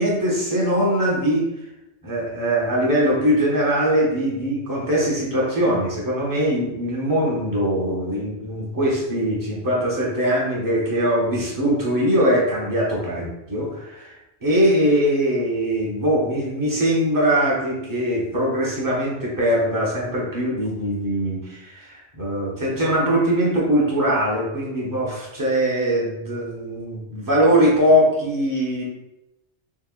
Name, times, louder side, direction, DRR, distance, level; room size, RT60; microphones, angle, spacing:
voice 1, 0.0-1.5 2.0-28.8, equal, 20° right, -5 dB, 0.7 m, -21 dB
3.6 x 2.1 x 2.4 m, 0.93 s
omnidirectional pair, 1.2 m